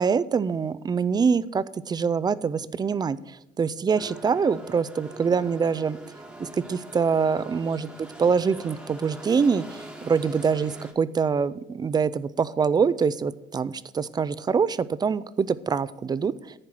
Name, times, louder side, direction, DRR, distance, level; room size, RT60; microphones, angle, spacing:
voice 1, 0.0-6.0 6.4-16.5, right 6 dB, 25° right, 16 dB, 0.3 m, -25 dB
sound 1, 3.9-10.9, right 1 dB, 5° right, 1.3 m, -43 dB
10.5 x 4.4 x 6.2 m, 0.87 s
cardioid pair, 110°, 17 cm